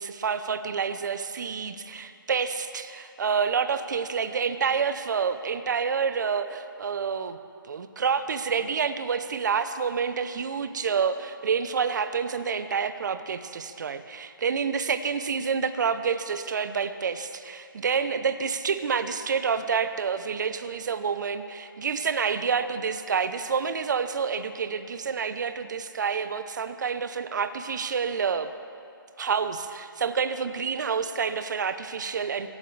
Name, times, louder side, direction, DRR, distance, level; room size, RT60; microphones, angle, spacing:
voice 1, 0.0-7.4 7.6-28.5 29.2-32.5, right 6 dB, 55° right, 10 dB, 0.8 m, -28 dB
23.0 x 11.5 x 3.3 m, 2.5 s
hypercardioid pair, 165°, 12 cm